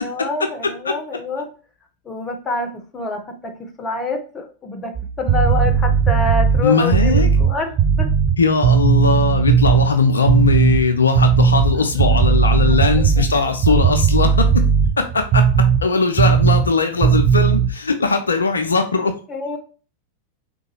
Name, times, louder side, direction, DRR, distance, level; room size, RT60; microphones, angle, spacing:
voice 1, 0.0-1.5 2.0-3.5 3.8-4.9 5.2-7.7 8.0-8.1 11.8-11.9 12.9-13.2 19.3-19.6, left 2 dB, 20° left, 4 dB, 0.7 m, -26 dB
voice 2, 0.8-1.2 6.6-7.3 8.4-14.6 15.0-15.4 15.8-19.2, left 4 dB, 75° left, 6 dB, 0.3 m, -19 dB
sound 1, 5.0-9.9 10.2-10.9 11.1-15.8 16.2-16.7 17.0-17.7, right 6 dB, 30° right, 0.6 m, -16 dB
3.7 x 2.2 x 2.8 m, 0.38 s
figure-of-eight pair, 90°, 0 cm